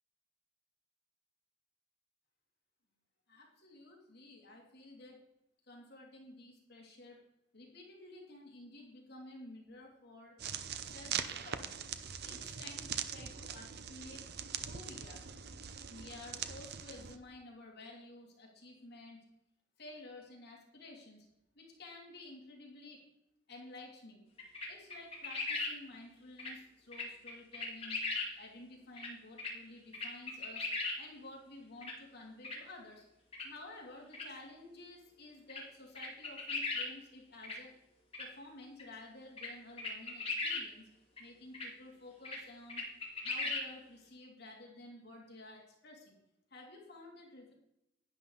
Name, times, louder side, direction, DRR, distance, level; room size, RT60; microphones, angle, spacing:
voice 1, 3.3-5.2 5.7-7.2 7.5-10.3 10.9-11.8 12.2-14.2 14.7-15.2 15.9-19.2 19.8-21.3 21.5-23.0 23.5-24.2 24.7-28.0 28.4-30.7 31.0-33.1 33.4-37.7 38.2-40.9 41.2-42.9 43.2-46.2 46.5-47.5, left 2 dB, 55° left, -1 dB, 2.8 m, -52 dB
sound 1, 10.4-17.2, right 8 dB, 55° right, 0.7 m, -42 dB
sound 2, 24.4-25.7 26.4-26.5 26.9-28.3 29.0-29.1 29.4-29.5 29.9-31.0 31.8-31.9 32.4-32.6 33.3-33.5 34.1-34.3 35.5-35.6 36.0-36.9 37.4-37.6 38.1-38.3 38.8-38.9 39.4-39.5 39.8-40.6 41.2-41.3 41.5-41.7 42.2-42.4 42.7-43.6, left 3 dB, 30° left, 2.2 m, -37 dB
11.0 x 10.0 x 4.0 m, 0.86 s
head